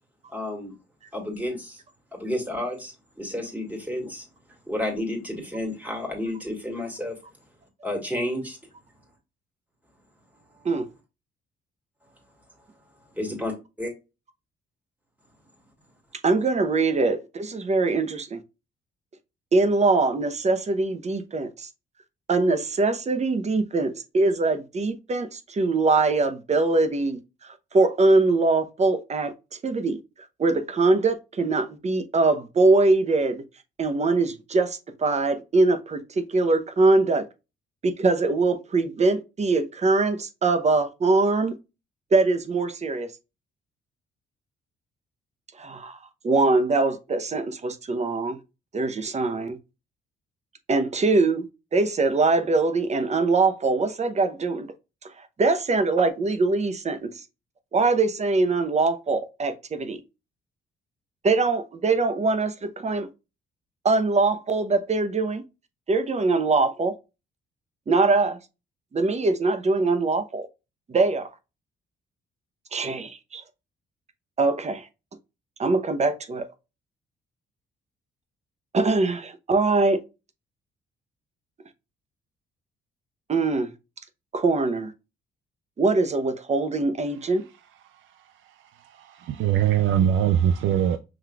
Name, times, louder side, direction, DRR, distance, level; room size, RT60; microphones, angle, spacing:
voice 1, 0.3-0.7 1.1-1.8 2.1-4.3 4.7-7.2 7.8-8.6 13.2-13.5 13.8-13.9, left 1 dB, 10° right, 2.1 m, -31 dB
voice 2, 16.2-18.4 19.5-21.7 22.3-27.2 27.7-29.3 29.6-30.0 30.4-33.4 33.8-37.2 37.8-41.5 42.1-43.1 45.6-46.0 46.2-48.4 48.7-49.6 50.7-54.7 55.4-57.2 57.7-60.0 61.2-63.1 63.8-65.4 65.9-66.9 67.9-68.4 68.9-70.5 70.9-71.3 72.7-73.4 74.4-74.9 75.6-76.5 78.7-80.0 83.3-83.7 84.3-84.9 85.8-87.5, right 3 dB, 35° right, 0.8 m, -22 dB
voice 3, 88.8-91.0, right 10 dB, 80° right, 0.4 m, -22 dB
5.8 x 3.2 x 2.3 m
cardioid pair, 90°, 20 cm